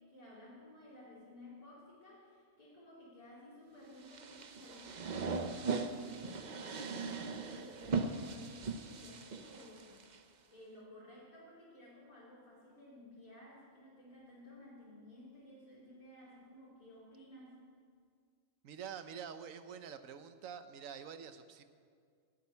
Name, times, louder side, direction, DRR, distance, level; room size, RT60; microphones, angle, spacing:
voice 1, 0.0-10.0 10.5-17.6, left 1 dB, 30° left, -9 dB, 3.9 m, -55 dB
sound 1, 4.0-10.2, right 4 dB, 45° right, 0.7 m, -39 dB
voice 2, 18.6-21.6, right 7 dB, 80° right, 10 dB, 1.2 m, -47 dB
14.5 x 7.8 x 9.4 m, 2.1 s
omnidirectional pair, 1.4 m